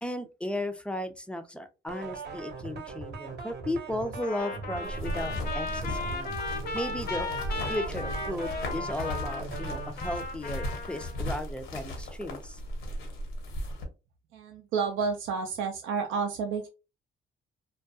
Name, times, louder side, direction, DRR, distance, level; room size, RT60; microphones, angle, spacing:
voice 1, 0.0-6.3 6.7-7.3 7.7-12.6, left 1 dB, 5° left, 8 dB, 0.4 m, -35 dB
sound 1, 1.9-9.9, right 4 dB, 55° right, 0.7 m, -40 dB
Trumpet, 4.2-11.2, left 3 dB, 55° left, 0.6 m, -36 dB
sound 2, 4.8-13.8, equal, 80° left, 0.9 m, -36 dB
voice 2, 14.3-16.7, right 5 dB, 85° right, 4 dB, 0.4 m, -30 dB
2.3 x 2.2 x 2.6 m, 0.29 s
cardioid pair, 90°, 20 cm